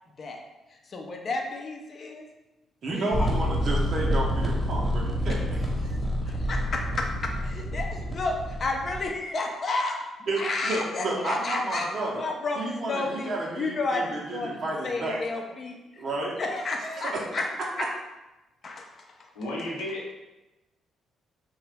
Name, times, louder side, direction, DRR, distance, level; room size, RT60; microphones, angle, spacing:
voice 1, 0.1-0.4 0.7-2.2 2.9-3.3 5.3-5.4 6.2-16.0 16.4-17.5 17.8-17.9 18.6-19.3, left 3 dB, 50° left, 2 dB, 0.5 m, -32 dB
voice 2, 2.8-5.4 5.8-5.9 10.3-12.2 12.6-15.2 16.0-16.4 17.0-17.2, right 2 dB, 55° right, -2 dB, 0.6 m, -31 dB
sound 1, 3.1-9.0, equal, 10° left, 1.0 m, -28 dB
voice 3, 19.3-20.1, left 1 dB, 85° left, -5 dB, 0.8 m, -33 dB
2.9 x 2.2 x 3.3 m, 1.0 s
hypercardioid pair, 45°, 0 cm